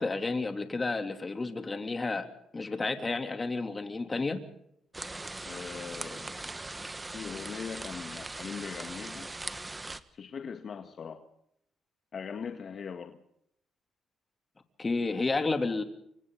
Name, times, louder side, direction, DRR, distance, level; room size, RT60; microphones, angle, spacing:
voice 1, 0.0-2.3 2.5-4.4 14.8-15.8, left 3 dB, 25° left, 6 dB, 3.1 m, -31 dB
sound 1, 4.9-10.0, right 2 dB, 15° right, 1.4 m, -40 dB
voice 2, 5.4-6.4 7.1-9.3 10.1-11.3 12.1-13.2, left 6 dB, 50° left, 7 dB, 1.6 m, -40 dB
29.0 x 24.5 x 4.0 m, 0.72 s
cardioid pair, 90°, 0 cm